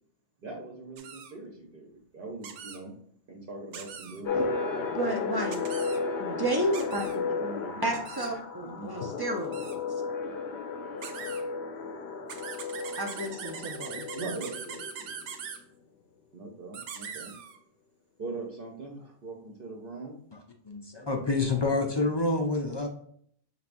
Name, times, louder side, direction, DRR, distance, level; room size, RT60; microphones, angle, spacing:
voice 1, 0.4-2.9 3.3-5.0 7.1-8.3 8.6-8.9 14.1-15.2 16.3-17.3 18.2-20.2, right 3 dB, 55° right, 0 dB, 1.0 m, -41 dB
sound 1, 1.0-1.3 2.4-2.8 3.7-4.2 5.5-6.0 6.7-7.2 7.9-8.3 9.4-9.8 11.0-11.4 12.3-15.6 16.7-17.6, right 7 dB, 85° right, 0.9 m, -41 dB
sound 2, 4.3-15.5, left 4 dB, 70° left, 0.8 m, -34 dB
voice 2, 5.0-5.6 6.2-7.1 7.8-9.8 13.0-14.1, right 1 dB, 35° right, 2 dB, 0.4 m, -31 dB
voice 3, 20.7-22.9, left 3 dB, 35° left, 2 dB, 0.4 m, -27 dB
5.7 x 3.4 x 2.5 m, 0.64 s
omnidirectional pair, 1.2 m